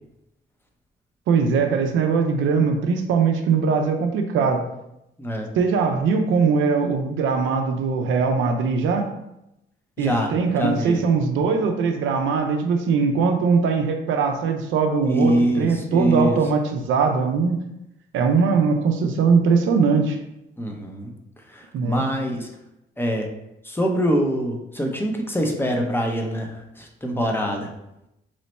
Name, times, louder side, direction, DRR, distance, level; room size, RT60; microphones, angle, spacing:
voice 1, 1.3-4.7 5.6-9.1 10.0-17.6 18.1-20.2 21.7-22.1, right 5 dB, 80° right, 5 dB, 0.5 m, -21 dB
voice 2, 10.0-11.0 15.0-16.4 20.6-21.1 21.5-22.5 23.0-23.3 23.6-27.7, equal, 10° left, 2 dB, 0.6 m, -24 dB
3.1 x 2.1 x 4.1 m, 0.87 s
cardioid pair, 90°, 20 cm